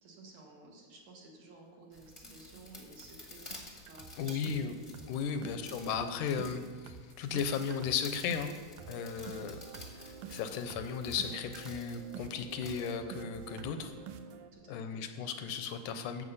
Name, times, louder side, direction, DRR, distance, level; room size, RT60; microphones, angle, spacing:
voice 1, 0.0-3.6 3.9-5.5 9.2-9.6 14.5-15.0, right 2 dB, 60° right, -1 dB, 3.0 m, -55 dB
sound 1, 1.9-13.0, left 2 dB, 20° left, 0.9 m, -52 dB
sound 2, 2.1-2.2 2.5-2.7 3.0-3.2 3.5-14.5, right 6 dB, 75° right, 1.9 m, -49 dB
voice 2, 4.2-4.8 5.1-8.5 8.9-9.6 10.0-13.9 14.7-16.2, left 6 dB, 80° left, 8 dB, 2.2 m, -35 dB
13.5 x 7.6 x 5.5 m, 1.5 s
omnidirectional pair, 3.7 m